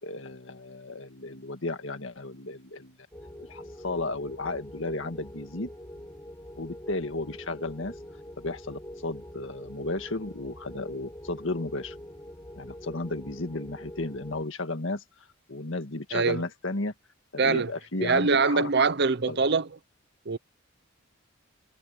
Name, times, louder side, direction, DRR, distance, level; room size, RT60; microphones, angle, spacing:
voice 1, 0.0-3.0 3.5-5.7 6.5-7.9 8.4-12.0 12.5-15.0 15.5-16.9 17.3-18.7 19.3-19.4, left 2 dB, 65° left, 2.0 m, -34 dB
sound 1, 3.1-14.4, equal, 15° left, 4.0 m, -44 dB
voice 2, 16.1-16.4 17.4-17.7 18.0-19.7 20.3-20.4, right 4 dB, 55° right, 0.7 m, -23 dB
head